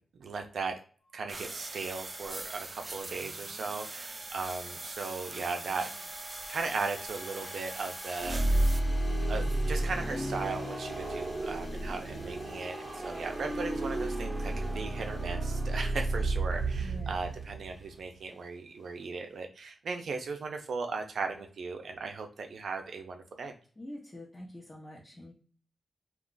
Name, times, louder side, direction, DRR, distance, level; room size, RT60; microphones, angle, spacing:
voice 1, 0.1-0.8 1.1-5.9 6.5-8.7 9.3-23.5, right 4 dB, 80° right, 5 dB, 0.5 m, -37 dB
sound 1, 1.0-19.3, left 1 dB, 65° left, 1.1 m, -52 dB
sound 2, 1.3-8.8, right 2 dB, 30° right, 0.3 m, -42 dB
sound 3, 8.2-17.9, right 2 dB, 50° right, 0.7 m, -32 dB
voice 2, 16.8-17.3 23.8-25.3, left 1 dB, 25° left, -6 dB, 0.8 m, -45 dB
2.4 x 2.4 x 3.8 m, 0.41 s
wide cardioid pair, 110°, 0 cm